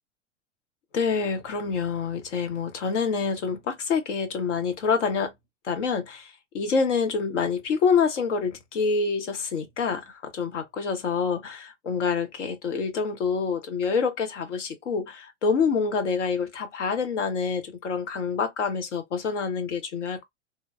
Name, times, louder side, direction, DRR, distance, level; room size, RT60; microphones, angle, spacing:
voice 1, 0.9-5.3 5.6-20.2, left 5 dB, 75° left, 0.9 m, -27 dB
3.1 x 2.2 x 2.2 m
hypercardioid pair, 95°, 36 cm